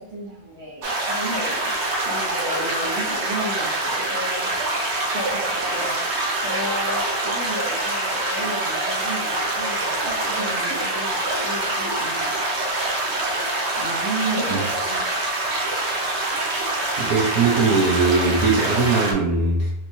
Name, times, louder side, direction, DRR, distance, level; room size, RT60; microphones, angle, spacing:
voice 1, 0.0-1.7 2.0-4.7 5.1-6.0 6.4-12.3 13.7-15.0, right 1 dB, 40° right, -6 dB, 1.3 m, -33 dB
sound 1, 0.8-19.1, right 2 dB, 55° right, 0.9 m, -25 dB
voice 2, 17.0-19.7, right 4 dB, 70° right, -3 dB, 1.2 m, -20 dB
3.3 x 3.1 x 2.7 m, 0.82 s
omnidirectional pair, 1.6 m